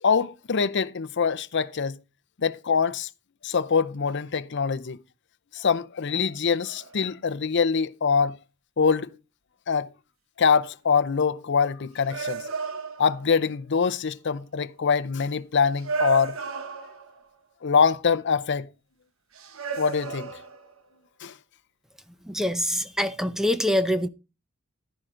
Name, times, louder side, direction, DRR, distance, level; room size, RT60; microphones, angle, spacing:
voice 1, 0.0-2.0 2.4-3.1 3.4-5.0 5.5-8.3 8.8-9.1 9.7-9.9 10.4-12.4 13.0-16.4 17.6-18.7 19.8-20.3 21.2-21.3, left 6 dB, 55° left, 0.6 m, -24 dB
sound 1, 6.6-7.0 11.2-11.3 12.1-13.4 14.3-14.4 15.8-17.3 19.3-20.8, right 5 dB, 65° right, 1.1 m, -33 dB
voice 2, 22.3-24.1, left 1 dB, ahead, 0.6 m, -25 dB
11.5 x 10.5 x 3.8 m
head